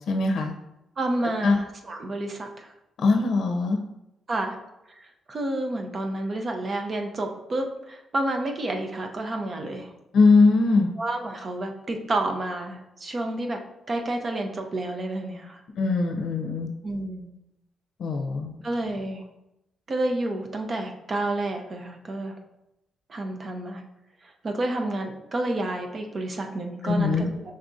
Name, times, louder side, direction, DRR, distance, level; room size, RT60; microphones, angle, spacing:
voice 1, 0.1-0.5 1.4-1.6 3.0-3.8 10.1-10.9 15.8-16.7 18.0-18.5 26.8-27.3, left 3 dB, 70° left, 3 dB, 0.5 m, -21 dB
voice 2, 1.0-2.7 4.3-4.6 5.3-9.9 11.0-13.6 13.9-15.6 16.8-17.4 18.6-19.2 19.9-22.4 23.1-23.9 24.4-27.6, right 2 dB, 45° right, 4 dB, 0.7 m, -30 dB
5.4 x 3.5 x 2.6 m, 0.89 s
cardioid pair, 75°, 0 cm